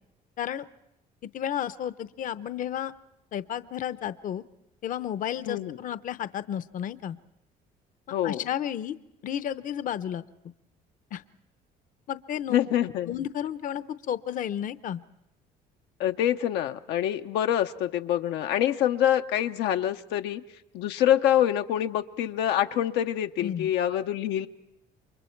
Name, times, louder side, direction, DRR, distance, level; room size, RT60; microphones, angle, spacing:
voice 1, 1.3-2.9 3.3-4.4 4.8-7.2 8.2-8.9 9.2-10.2 11.1-11.2 12.1-12.6 13.1-15.0 23.4-23.7, left 10 dB, 50° left, 14 dB, 0.7 m, -32 dB
voice 2, 5.5-5.8 8.1-8.4 12.5-13.1 16.0-20.4 20.7-24.5, left 11 dB, 85° left, 6 dB, 0.7 m, -26 dB
29.0 x 24.0 x 4.5 m, 0.84 s
cardioid pair, 110°, 17 cm